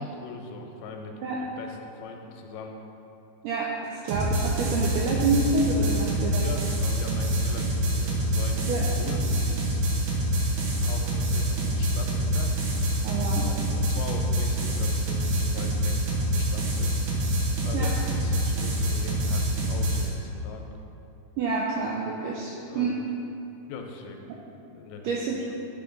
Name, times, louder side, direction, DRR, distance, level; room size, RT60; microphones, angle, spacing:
voice 1, 0.0-1.1 1.4-2.8 6.4-9.8 10.2-10.5 10.8-12.6 13.4-17.0 17.6-20.7 22.7-22.9 23.7-24.3 24.7-25.2, left 4 dB, 90° left, 3 dB, 2.7 m, -40 dB
voice 2, 3.4-6.5 8.7-8.8 13.0-13.5 17.7-17.9 21.4-23.0 25.0-25.4, right 3 dB, 90° right, -3 dB, 1.9 m, -28 dB
sound 1, 4.1-20.1, right 1 dB, 75° right, 2.5 m, -26 dB
11.0 x 3.9 x 3.7 m, 2.8 s
omnidirectional pair, 4.4 m